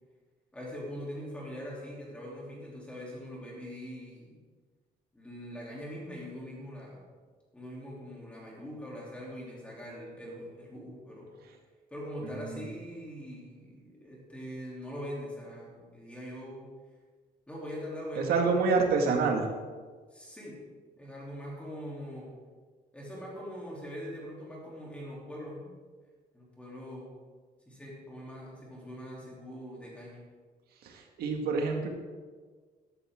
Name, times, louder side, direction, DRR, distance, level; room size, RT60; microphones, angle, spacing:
voice 1, 0.5-4.4 5.1-7.0 7.5-11.3 11.9-16.6 17.5-18.8 20.1-20.6 21.0-22.3 22.9-25.7 26.3-27.1 27.7-30.2, equal, 5° left, -4 dB, 3.2 m, -42 dB
voice 2, 18.2-19.4 30.8-31.9, right 4 dB, 75° right, 3 dB, 2.0 m, -27 dB
13.0 x 12.5 x 3.7 m, 1.5 s
cardioid pair, 180°, 16 cm